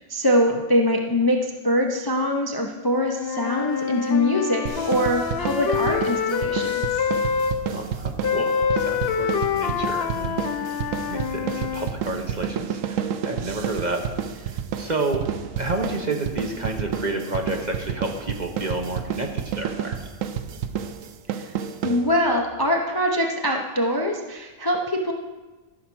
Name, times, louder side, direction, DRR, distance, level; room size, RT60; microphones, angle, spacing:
voice 1, 0.1-6.9 10.6-10.7 21.3-21.4 21.8-25.1, left 1 dB, 25° left, 1 dB, 0.6 m, -23 dB
Wind instrument woodwind instrument, 3.1-7.5 8.2-11.9, left 6 dB, 55° left, 0.7 m, -26 dB
sound 1, 4.7-22.4, right 8 dB, 75° right, 1.0 m, -30 dB
voice 2, 7.7-10.8 11.1-14.0 14.4-15.3 15.5-20.0, right 2 dB, 35° right, 3 dB, 0.9 m, -30 dB
13.5 x 5.7 x 6.2 m, 1.2 s
omnidirectional pair, 1.4 m